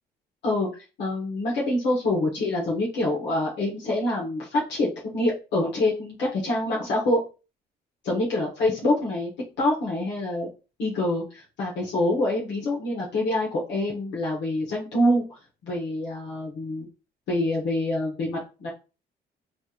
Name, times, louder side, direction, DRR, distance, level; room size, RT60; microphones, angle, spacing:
voice 1, 1.0-7.2 8.0-9.3 9.6-10.5 10.8-16.9 17.3-18.7, left 1 dB, 85° left, -4 dB, 1.3 m, -26 dB
3.3 x 2.5 x 4.3 m, 0.32 s
cardioid pair, 165°, 18 cm